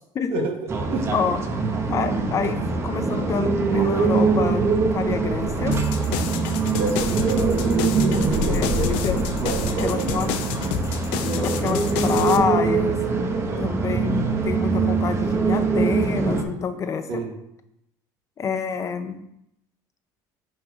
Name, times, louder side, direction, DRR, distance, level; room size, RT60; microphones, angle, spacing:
voice 1, 0.1-0.5 1.1-1.4 1.9-5.8 8.4-9.2 9.8-10.3 11.4-13.0 13.6-17.2 18.4-19.2, left 6 dB, 35° left, 9 dB, 0.7 m, -27 dB
sound 1, 0.7-16.4, right 4 dB, 30° right, 1.0 m, -23 dB
sound 2, 5.7-12.4, left 10 dB, 80° left, 0.6 m, -30 dB
voice 2, 6.7-7.5 7.9-8.9 9.4-10.3 13.3-13.7 17.1-17.3, right 4 dB, 70° right, 0 dB, 1.9 m, -29 dB
6.4 x 4.6 x 4.8 m, 0.80 s
cardioid pair, 125°, 9 cm